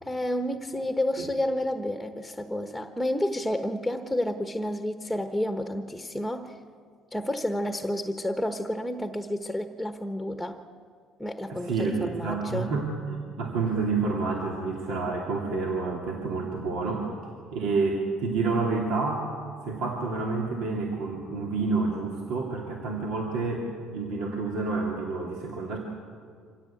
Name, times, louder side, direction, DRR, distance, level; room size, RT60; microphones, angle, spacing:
voice 1, 0.0-6.6 7.1-10.6 11.2-12.7, left 1 dB, ahead, 7 dB, 1.2 m, -30 dB
voice 2, 11.5-17.1 17.5-19.3 19.6-25.8, right 4 dB, 75° right, -1 dB, 2.8 m, -29 dB
25.0 x 16.5 x 8.6 m, 2.1 s
supercardioid pair, 90°, 0 cm